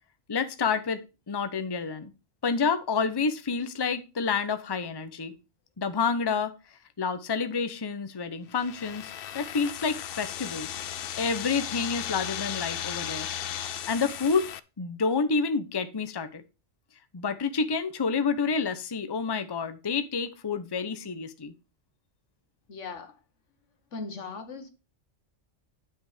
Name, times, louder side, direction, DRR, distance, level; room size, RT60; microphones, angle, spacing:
voice 1, 0.3-2.1 2.4-5.3 5.8-6.5 7.0-10.8 11.2-13.3 13.9-14.5 14.8-16.4 17.1-21.5, left 5 dB, 25° left, 0.7 m, -29 dB
sound 1, 8.5-14.6, left 10 dB, 60° left, 0.7 m, -36 dB
voice 2, 22.7-23.2 23.9-24.7, left 4 dB, 80° left, 1.6 m, -38 dB
9.5 x 5.7 x 4.9 m
omnidirectional pair, 1.2 m